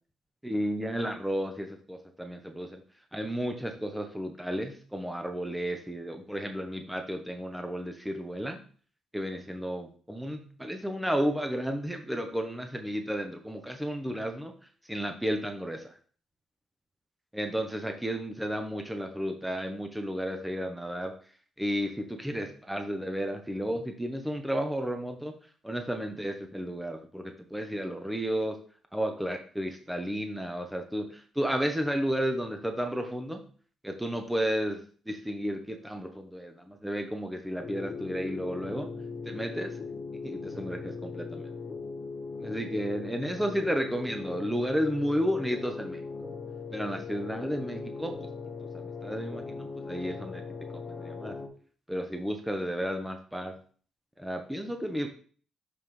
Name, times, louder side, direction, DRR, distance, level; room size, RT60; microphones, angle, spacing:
voice 1, 0.4-2.8 3.1-8.6 9.1-14.5 14.8-15.9 17.3-21.1 21.6-25.3 25.6-28.6 28.9-33.4 33.8-38.9 39.2-39.8 40.2-41.5 42.4-46.0 46.7-48.3 48.7-50.4 50.7-51.4 51.9-53.5 54.2-55.1, equal, 5° right, 5 dB, 0.9 m, -32 dB
sound 1, 37.6-51.5, left 4 dB, 45° left, 1.2 m, -39 dB
6.7 x 5.6 x 3.2 m, 0.43 s
cardioid pair, 90°, 0 cm